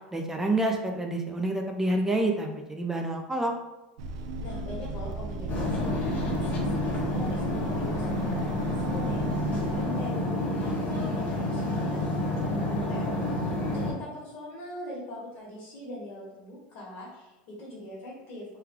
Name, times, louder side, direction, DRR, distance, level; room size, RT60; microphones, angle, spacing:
voice 1, 0.1-3.5, right 2 dB, 10° right, 3 dB, 0.5 m, -28 dB
sound 1, 4.0-9.8, right 3 dB, 75° right, 0.4 m, -36 dB
voice 2, 4.4-10.1 10.6-18.6, left 1 dB, 60° left, -6 dB, 1.4 m, -42 dB
sound 2, 5.5-13.9, left 1 dB, 40° left, 1.2 m, -29 dB
3.3 x 2.2 x 3.6 m, 1.0 s
supercardioid pair, 120°, 4 cm